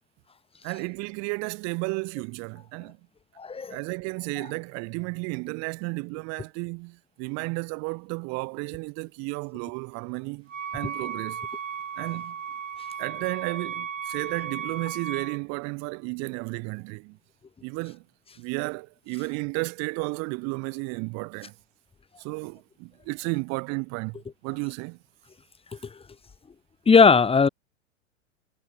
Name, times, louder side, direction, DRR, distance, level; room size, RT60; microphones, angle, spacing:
voice 1, 0.6-3.0 3.7-11.4 12.0-12.4 13.0-17.2 17.6-18.0 18.4-21.5 22.2-24.2 24.4-25.0, right 30 dB, 40° right, 3.1 m, -33 dB
voice 2, 3.4-3.8 25.7-26.0 26.9-27.5, left 5 dB, 15° left, 3.6 m, -18 dB
Wind instrument woodwind instrument, 10.5-15.4, right 7 dB, 75° right, 3.0 m, -35 dB
figure-of-eight pair, 95°, 38 cm